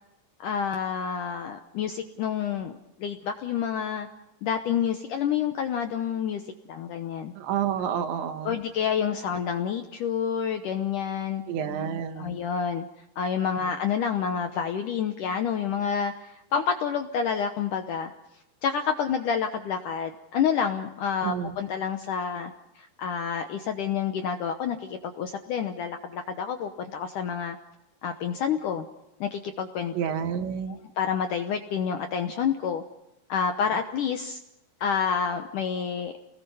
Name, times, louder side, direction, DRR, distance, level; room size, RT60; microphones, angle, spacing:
voice 1, 0.4-4.1 4.4-6.4 6.7-7.3 8.4-11.4 12.2-12.9 13.2-18.1 18.6-27.6 28.0-28.9 29.2-29.9 30.7-32.8 33.3-34.4 34.8-36.1, left 7 dB, 75° left, 6 dB, 1.9 m, -28 dB
voice 2, 7.4-8.5 11.5-12.4 21.2-21.6 29.9-30.8, right 8 dB, 90° right, 6 dB, 4.1 m, -29 dB
29.0 x 20.0 x 5.5 m, 0.88 s
omnidirectional pair, 5.0 m